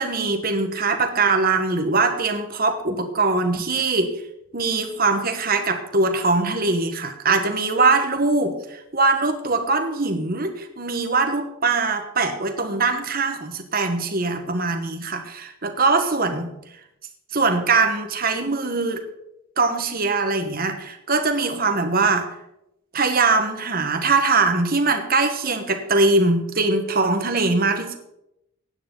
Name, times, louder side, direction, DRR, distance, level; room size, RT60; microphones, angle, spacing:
voice 1, 0.0-4.2 4.5-16.5 17.3-19.0 19.6-22.3 22.9-28.0, right 3 dB, 40° right, 6 dB, 1.3 m, -22 dB
16.0 x 9.7 x 3.9 m, 0.82 s
head